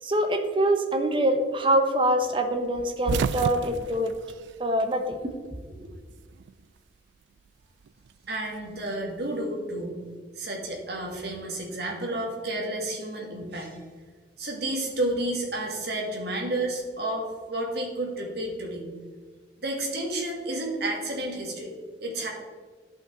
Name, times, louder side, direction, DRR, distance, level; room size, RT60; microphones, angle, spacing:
voice 1, 0.0-4.1 4.6-5.3 5.7-5.9, right 1 dB, 30° right, 6 dB, 0.8 m, -25 dB
sound 1, 2.7-5.3 5.6-6.6 7.8-9.3, right 6 dB, 80° right, 0.3 m, -32 dB
voice 2, 8.3-10.0 10.4-13.8 14.4-18.9 19.6-21.7 22.0-22.3, right 1 dB, 65° right, 0 dB, 1.9 m, -31 dB
12.0 x 5.4 x 3.8 m, 1.5 s
head